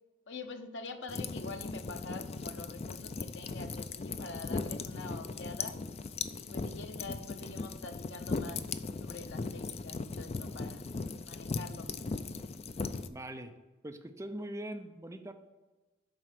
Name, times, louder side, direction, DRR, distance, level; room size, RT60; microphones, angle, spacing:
voice 1, 0.3-5.8 6.5-8.6 9.0-10.8 11.2-11.9, left 3 dB, 80° left, 6 dB, 0.8 m, -45 dB
sound 1, 1.1-13.1, left 4 dB, 35° left, 0.4 m, -38 dB
voice 2, 13.1-13.6 13.8-15.3, right 1 dB, 15° right, 7 dB, 0.6 m, -42 dB
7.7 x 4.9 x 5.9 m, 1.2 s
head